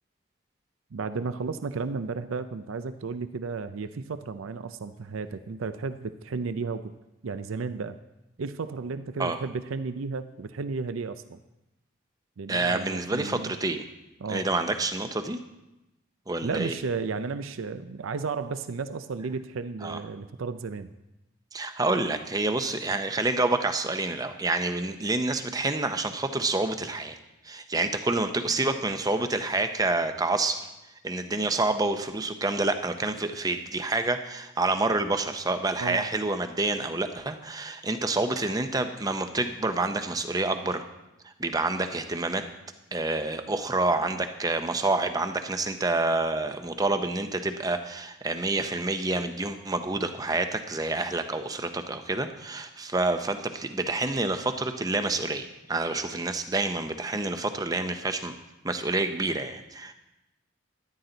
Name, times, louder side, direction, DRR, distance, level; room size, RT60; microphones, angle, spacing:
voice 1, 0.9-6.9 7.2-8.0 8.4-11.4 12.4-13.5 14.2-14.5 16.4-20.9 35.8-36.1, right 4 dB, 80° right, 11 dB, 0.5 m, -33 dB
voice 2, 12.5-13.8 14.3-15.4 16.3-16.7 19.8-20.0 21.5-27.2 27.4-30.7 31.0-40.8 41.2-42.4 42.9-58.3 58.6-59.9, right 2 dB, 20° right, 8 dB, 0.7 m, -28 dB
13.0 x 11.0 x 3.9 m, 0.96 s
head